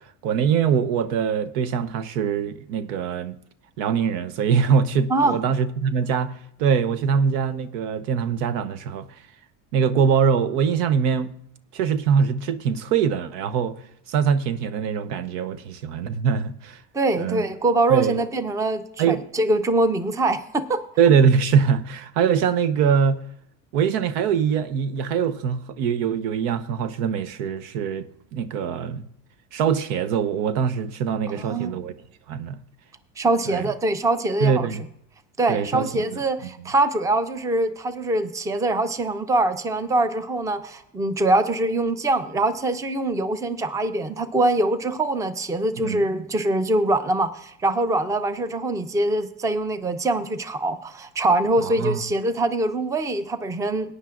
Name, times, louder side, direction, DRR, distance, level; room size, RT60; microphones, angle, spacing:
voice 1, 0.0-3.4 3.8-9.2 9.7-11.3 11.7-13.8 14.1-16.8 17.2-17.5 17.9-18.2 19.0-19.2 21.0-23.2 23.7-29.0 29.5-31.9 32.3-32.6 33.5-33.7 34.4-34.8 35.5-36.2 45.8-46.0 51.6-52.0, right 7 dB, 80° right, 0.9 m, -23 dB
voice 2, 16.9-20.8 31.3-31.7 33.2-34.7 35.4-53.9, right 2 dB, 5° right, 0.5 m, -23 dB
18.0 x 9.7 x 2.5 m
supercardioid pair, 110°, 48 cm